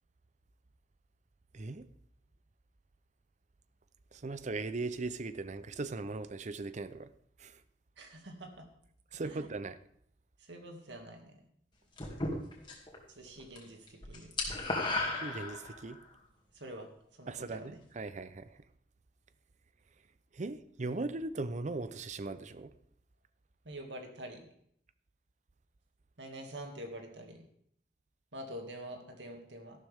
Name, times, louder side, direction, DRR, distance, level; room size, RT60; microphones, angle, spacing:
voice 1, 1.5-1.9 4.1-7.1 7.4-7.6 9.1-9.8 15.1-16.0 17.3-18.6 20.3-22.7, right 3 dB, 45° right, 0.6 m, -39 dB
voice 2, 8.0-8.6 9.2-9.4 10.4-11.4 13.2-14.3 16.5-16.9 17.2-17.8 23.6-24.5 26.2-27.5 28.3-29.8, right 1 dB, 90° right, 2.2 m, -46 dB
sound 1, 12.0-13.0 13.3-13.6 13.9-16.0, left 2 dB, 25° left, 2.4 m, -34 dB
13.0 x 12.0 x 3.5 m
head